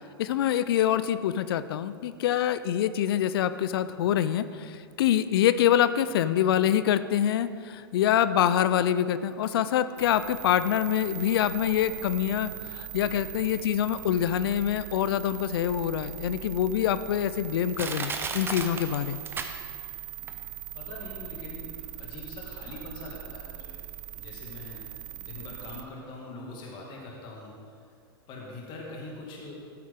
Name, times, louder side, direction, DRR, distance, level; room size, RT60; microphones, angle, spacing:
voice 1, 0.2-19.2, left 10 dB, 65° left, 14 dB, 0.5 m, -25 dB
sound 1, 10.0-25.8, right 13 dB, 50° right, 0.7 m, -41 dB
Crushing, 15.7-15.8 16.4-16.5 17.2-17.3 17.8-20.0 20.3-20.4, right 4 dB, 15° right, 0.8 m, -34 dB
voice 2, 20.7-23.8 24.1-24.8 25.1-27.8 28.3-29.6, left 2 dB, 35° left, -2 dB, 2.2 m, -43 dB
12.5 x 8.4 x 3.7 m, 2.2 s
hypercardioid pair, 115°, 13 cm